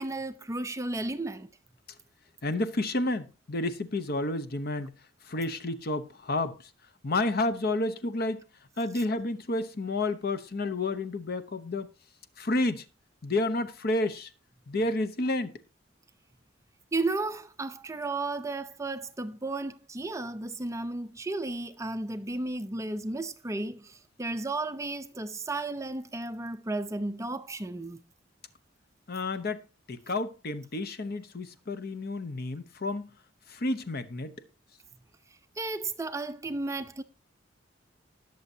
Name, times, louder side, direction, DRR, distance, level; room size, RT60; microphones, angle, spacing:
voice 1, 0.0-1.5 16.9-28.0 35.6-37.0, right 2 dB, 15° right, 0.5 m, -33 dB
voice 2, 2.4-4.9 5.2-6.7 7.0-8.4 8.8-11.9 12.4-12.8 13.2-14.3 14.7-15.6 29.1-29.6 29.9-33.1 33.5-34.3, left 2 dB, 55° left, 0.9 m, -30 dB
19.5 x 6.6 x 2.8 m
head